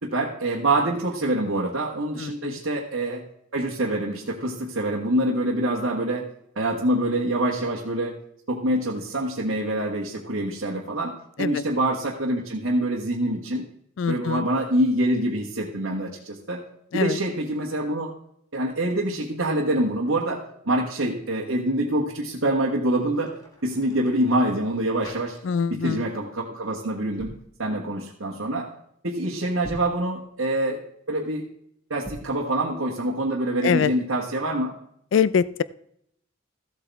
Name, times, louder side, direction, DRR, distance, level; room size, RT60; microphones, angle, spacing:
voice 1, 0.0-3.2 3.5-6.2 6.5-8.1 8.5-13.6 14.1-16.6 16.9-18.1 18.5-20.4 20.6-23.3 23.6-25.4 25.7-27.3 27.6-28.7 29.0-30.8 31.1-31.4 31.9-34.7, right 1 dB, 70° right, -3 dB, 1.5 m, -25 dB
voice 2, 2.2-2.6 11.4-11.6 14.0-14.5 16.9-17.2 25.4-26.1 33.6-33.9 35.1-35.6, left 7 dB, 60° left, 18 dB, 0.3 m, -24 dB
sound 1, 23.0-25.8 26.1-26.4 27.0-27.5 29.5-30.0 31.9-32.4, equal, 20° left, 2.1 m, -44 dB
14.5 x 8.2 x 3.5 m, 0.72 s
head